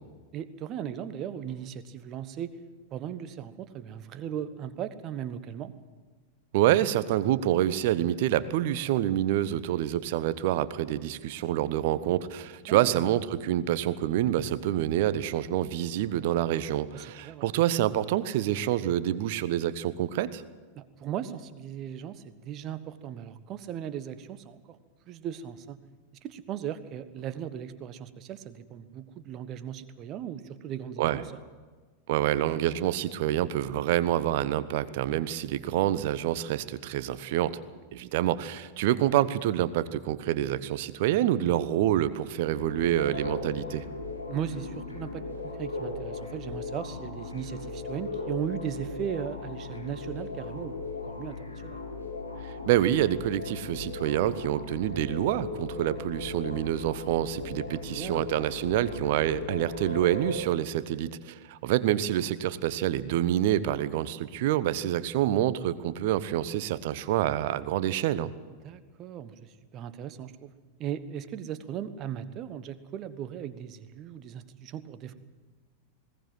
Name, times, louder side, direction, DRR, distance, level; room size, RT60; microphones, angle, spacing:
voice 1, 0.3-2.5 2.9-5.7 12.7-13.0 16.9-17.5 20.7-24.8 25.1-25.8 26.2-31.2 44.3-50.8 51.0-51.8 57.9-58.2 68.6-70.5 70.8-75.1, right 9 dB, 35° right, 12 dB, 1.3 m, -37 dB
voice 2, 6.5-20.4 31.0-31.2 32.1-37.5 37.9-43.8 52.4-68.3, right 12 dB, 50° right, 16 dB, 1.0 m, -27 dB
sound 1, 42.6-60.3, left 3 dB, 85° left, 3.4 m, -38 dB
20.5 x 18.0 x 7.7 m, 1.4 s
figure-of-eight pair, 90°, 0 cm